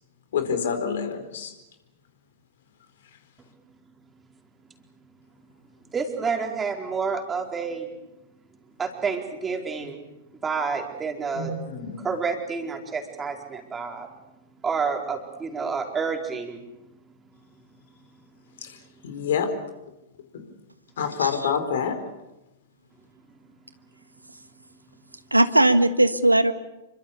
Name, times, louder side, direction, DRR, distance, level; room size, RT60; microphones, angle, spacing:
voice 1, 0.3-1.5 11.3-12.1 19.0-19.5 21.0-22.0, left 7 dB, 60° left, 8 dB, 4.4 m, -27 dB
voice 2, 5.9-7.9 8.8-10.0 10.4-11.5 12.0-14.1 14.6-16.6, right 5 dB, 15° right, 2 dB, 4.5 m, -29 dB
voice 3, 21.2-21.5 25.3-26.5, right 1 dB, 90° right, 10 dB, 1.5 m, -19 dB
28.0 x 24.5 x 7.0 m, 0.97 s
figure-of-eight pair, 100°, 0 cm